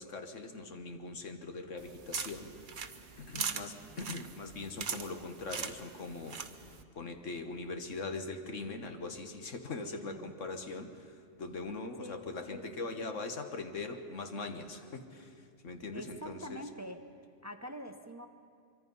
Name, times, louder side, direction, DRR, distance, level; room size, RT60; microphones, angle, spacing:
voice 1, 0.0-2.7 3.2-16.6, left 3 dB, 85° left, 6 dB, 1.8 m, -41 dB
sound 1, 1.8-6.8, right 6 dB, 45° right, 1.0 m, -41 dB
voice 2, 3.3-3.9 8.7-9.0 9.8-10.3 12.0-12.2 12.5-13.1 15.9-17.0 17.4-18.3, equal, 15° right, 7 dB, 0.7 m, -46 dB
24.5 x 24.5 x 5.5 m, 2.4 s
omnidirectional pair, 1.3 m